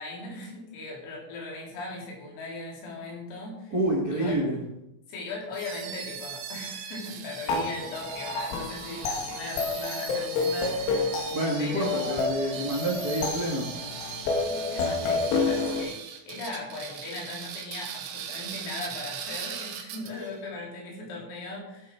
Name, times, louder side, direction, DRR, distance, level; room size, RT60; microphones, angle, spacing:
voice 1, 0.0-3.8 4.1-4.4 5.1-11.3 11.6-12.3 14.4-16.0 16.3-21.9, left 3 dB, 90° left, -2 dB, 6.0 m, -38 dB
voice 2, 3.7-4.6 11.3-13.7, right 1 dB, 55° right, -3 dB, 1.0 m, -28 dB
sound 1, 5.5-20.3, right 8 dB, 80° right, 2.1 m, -39 dB
sound 2, 7.5-15.8, left 4 dB, 70° left, 3.9 m, -30 dB
15.0 x 8.2 x 4.5 m, 0.87 s
omnidirectional pair, 5.9 m